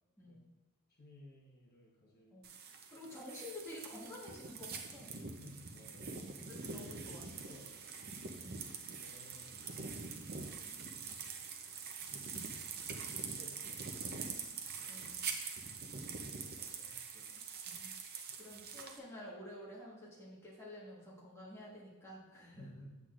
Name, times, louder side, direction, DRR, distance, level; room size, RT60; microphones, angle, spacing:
voice 1, 0.2-0.5 2.3-2.5 2.9-5.1 6.2-7.3 8.4-8.7 14.9-15.2 16.4-16.9 17.6-18.0 18.4-22.6, left 1 dB, 10° left, -5 dB, 1.4 m, -51 dB
voice 2, 1.0-2.3 5.4-7.7 8.0-8.3 9.0-9.6 10.3-10.6 12.1-12.5 13.4-14.2 14.8-15.1 16.7-17.3 22.5-23.0, left 1 dB, 45° left, -3 dB, 1.3 m, -58 dB
sound 1, 2.4-19.0, right 5 dB, 45° right, 0.7 m, -44 dB
7.9 x 7.8 x 2.5 m, 1.1 s
head